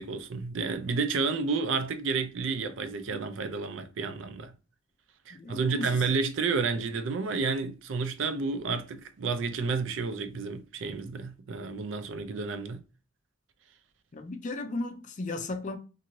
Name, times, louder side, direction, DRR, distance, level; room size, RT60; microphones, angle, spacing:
voice 1, 0.0-4.5 5.3-12.8, right 4 dB, 75° right, 0.4 m, -31 dB
voice 2, 5.3-6.0 14.1-15.8, left 2 dB, 40° left, 0.4 m, -35 dB
2.6 x 2.6 x 2.9 m
head